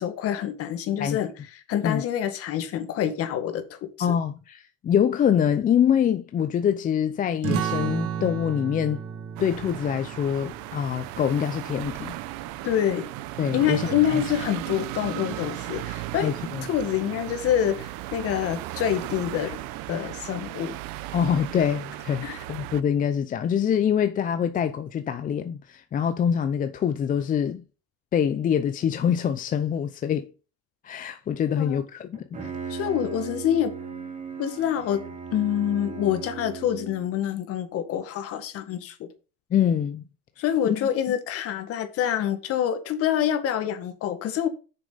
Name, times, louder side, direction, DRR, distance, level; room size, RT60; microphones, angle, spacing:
voice 1, 0.0-1.3 1.7-4.1 12.6-13.1 13.5-16.3 16.7-19.6 19.9-20.8 22.2-22.4 31.6-31.8 32.4-33.7 34.4-35.0 35.3-39.1 40.4-44.5, left 10 dB, 50° left, 1.8 m, -26 dB
voice 2, 4.0-9.0 9.4-12.1 13.4-14.2 16.2-16.6 21.1-27.6 28.1-30.3 30.8-32.2 39.5-40.0 40.6-40.9, left 8 dB, 30° left, 0.6 m, -25 dB
sound 1, 7.4-12.6, right 7 dB, 50° right, 1.6 m, -33 dB
sound 2, 9.4-22.8, right 16 dB, 75° right, 0.8 m, -36 dB
Bowed string instrument, 32.1-37.2, right 6 dB, 25° right, 2.2 m, -37 dB
8.4 x 6.8 x 4.0 m
cardioid pair, 140°, 29 cm